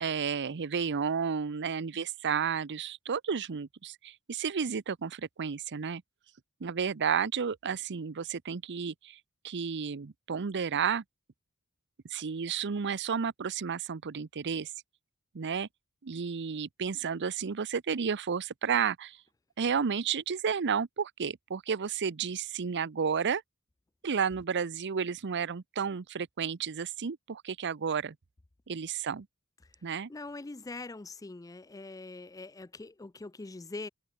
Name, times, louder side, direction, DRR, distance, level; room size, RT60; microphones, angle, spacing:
voice 1, 0.0-6.0 6.6-9.2 9.4-11.0 12.1-14.7 15.3-15.7 16.0-19.2 19.6-23.4 24.0-28.2 28.7-29.3 29.8-30.1, right 6 dB, 50° right, 0.6 m, -32 dB
voice 2, 30.1-33.9, left 3 dB, 15° left, 0.4 m, -43 dB
head